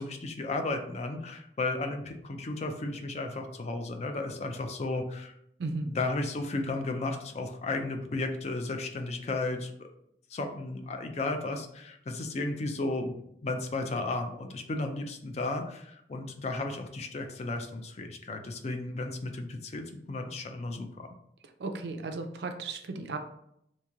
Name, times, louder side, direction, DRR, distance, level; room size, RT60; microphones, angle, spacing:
voice 1, 0.0-5.3 5.8-9.9 10.3-21.1, left 2 dB, 35° left, 5 dB, 0.4 m, -34 dB
voice 2, 5.6-5.9 21.6-23.2, right 3 dB, 65° right, 5 dB, 0.4 m, -35 dB
3.0 x 2.7 x 3.5 m, 0.75 s
head